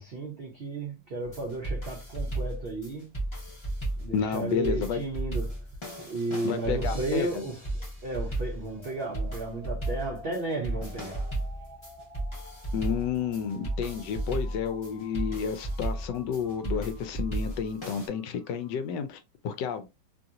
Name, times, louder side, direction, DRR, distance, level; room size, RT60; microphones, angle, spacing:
voice 1, 0.0-3.1 4.0-5.6 6.0-11.3, right 2 dB, 70° right, 0.5 m, -34 dB
sound 1, 1.2-18.1, right 1 dB, 25° left, 0.7 m, -34 dB
voice 2, 4.1-5.0 6.4-7.4 12.7-19.9, left 7 dB, 75° left, 1.2 m, -31 dB
sound 2, 8.8-18.8, left 1 dB, 40° left, 1.9 m, -51 dB
3.1 x 2.7 x 2.4 m
omnidirectional pair, 2.0 m